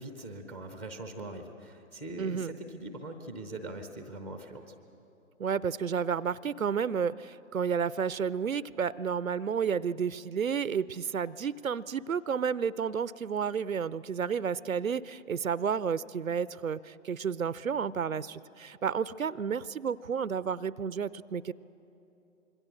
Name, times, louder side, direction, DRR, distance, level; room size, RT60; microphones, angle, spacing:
voice 1, 0.0-4.7, right 2 dB, 5° left, 7 dB, 0.5 m, -42 dB
voice 2, 2.2-2.5 5.4-21.5, right 7 dB, 85° right, 19 dB, 0.6 m, -31 dB
26.0 x 22.5 x 6.4 m, 2.9 s
figure-of-eight pair, 130°, 40 cm